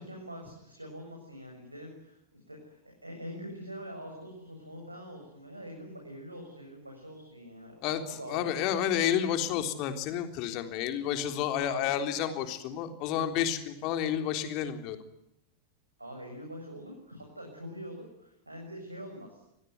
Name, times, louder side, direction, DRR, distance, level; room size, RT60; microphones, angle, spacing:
voice 1, 0.0-8.7 11.6-11.8 16.0-19.4, equal, 85° right, 1 dB, 7.1 m, -44 dB
voice 2, 7.8-15.0, left 9 dB, 40° left, 7 dB, 3.7 m, -30 dB
27.0 x 20.0 x 9.6 m, 0.81 s
figure-of-eight pair, 90°, 0 cm